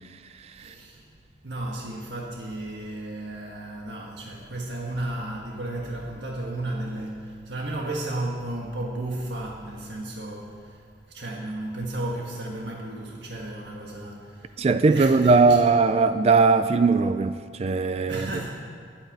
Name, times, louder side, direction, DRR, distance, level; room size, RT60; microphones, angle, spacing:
voice 1, 0.6-1.0 1.4-10.6 11.1-14.4 14.8-15.6 18.1-18.5, right 1 dB, 70° right, -1 dB, 1.5 m, -33 dB
voice 2, 14.6-18.5, right 4 dB, 35° right, 11 dB, 0.3 m, -20 dB
11.0 x 8.9 x 9.1 m, 2.1 s
head